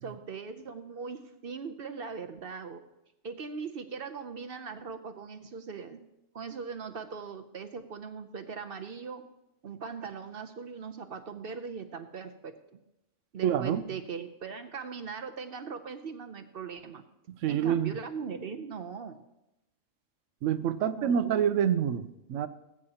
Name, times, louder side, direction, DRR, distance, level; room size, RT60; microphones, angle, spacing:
voice 1, 0.0-2.8 3.2-6.0 6.3-9.2 9.6-12.8 13.3-17.0 17.5-19.2 20.8-21.3, right 5 dB, 55° right, 7 dB, 0.7 m, -40 dB
voice 2, 13.4-13.8 17.3-17.9 20.4-22.5, right 9 dB, 70° right, 13 dB, 1.0 m, -27 dB
19.0 x 8.6 x 2.9 m, 0.92 s
omnidirectional pair, 1.4 m